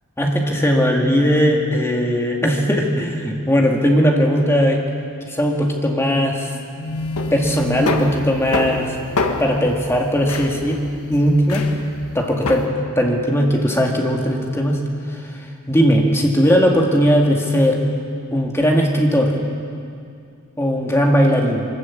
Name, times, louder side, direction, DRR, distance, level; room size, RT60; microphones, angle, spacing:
voice 1, 0.2-4.8 5.3-6.5 7.3-9.0 9.4-10.8 11.1-11.7 12.1-14.8 15.1-15.2 15.7-17.8 18.3-19.4 20.6-21.7, equal, 10° left, 0 dB, 2.1 m, -18 dB
sound 1, 6.7-12.6, left 2 dB, 90° left, 1.6 m, -26 dB
23.0 x 13.5 x 8.4 m, 2.4 s
head